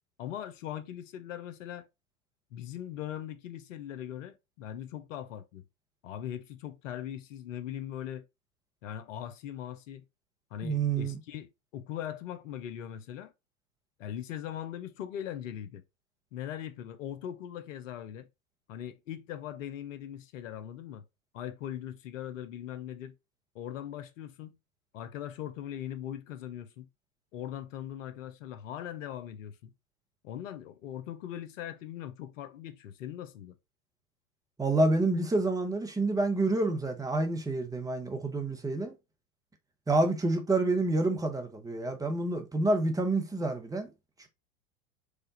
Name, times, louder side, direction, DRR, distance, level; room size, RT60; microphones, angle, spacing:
voice 1, 0.2-1.9 2.5-5.6 6.0-8.2 8.8-10.0 10.5-13.3 14.0-15.8 16.3-18.3 18.7-21.0 21.3-23.1 23.5-24.6 24.9-26.9 27.3-29.7 30.2-33.5, left 10 dB, 60° left, 0.8 m, -40 dB
voice 2, 10.6-11.2 34.6-38.9 39.9-43.9, right 2 dB, 10° right, 0.9 m, -28 dB
4.8 x 2.4 x 3.9 m
figure-of-eight pair, 90°, 42 cm